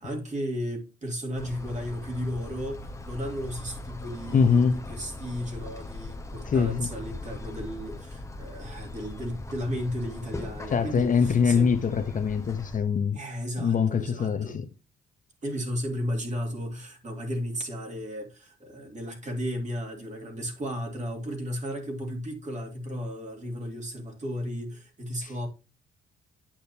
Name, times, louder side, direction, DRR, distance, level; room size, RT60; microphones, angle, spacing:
voice 1, 0.0-11.7 13.1-14.6 15.4-25.5, equal, 35° right, 2.5 m, -34 dB
sound 1, 1.3-12.8, left 2 dB, 15° left, 1.0 m, -40 dB
voice 2, 4.3-4.8 6.5-6.9 10.7-13.2 13.6-14.5 25.2-25.3, left 6 dB, 40° left, 0.8 m, -23 dB
8.7 x 6.3 x 2.8 m
cardioid pair, 90°, 20 cm